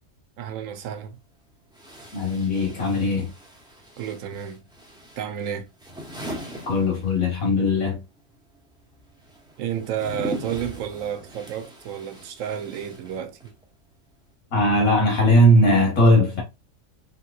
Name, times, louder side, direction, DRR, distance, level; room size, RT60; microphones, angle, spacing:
voice 1, 0.4-1.2 4.0-4.7 5.2-5.7 9.6-13.5, right 9 dB, 75° right, 1.0 m, -31 dB
sound 1, 1.7-7.5 7.8-13.6, right 1 dB, 5° right, 0.5 m, -40 dB
voice 2, 2.1-3.3 6.6-8.0 14.5-16.4, left 1 dB, 80° left, 1.7 m, -19 dB
3.4 x 2.9 x 2.3 m
omnidirectional pair, 1.4 m